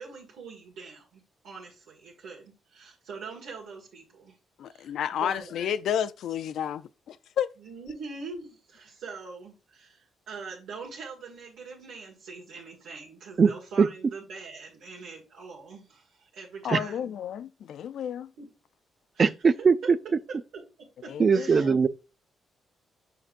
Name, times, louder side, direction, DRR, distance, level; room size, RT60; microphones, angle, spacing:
voice 1, 0.0-4.3 4.7-5.6 7.6-17.1 18.4-18.5 19.1-19.3 19.6-19.7 20.5-21.7, right 4 dB, 85° right, 1.8 m, -43 dB
voice 2, 4.6-7.5 16.6-18.3 21.1-21.8, left 9 dB, 75° left, 0.4 m, -31 dB
voice 3, 19.2-20.0 21.2-21.9, right 5 dB, 35° right, 0.4 m, -20 dB
6.6 x 5.9 x 2.5 m
cardioid pair, 130°, 0 cm